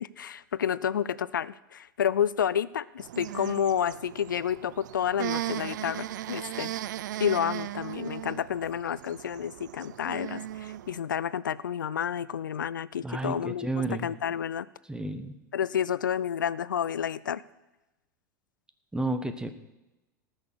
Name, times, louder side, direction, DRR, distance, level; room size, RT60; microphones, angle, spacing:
voice 1, 0.0-6.7 7.2-13.7 14.0-14.7 15.5-17.4, left 9 dB, 80° left, 19 dB, 0.5 m, -30 dB
sound 1, 3.0-11.0, right 13 dB, 70° right, 0.4 m, -37 dB
voice 2, 13.0-14.1 14.9-15.3 18.9-19.5, right 2 dB, 10° right, 9 dB, 1.2 m, -31 dB
18.5 x 6.4 x 6.2 m, 1.0 s
hypercardioid pair, 90°, 10 cm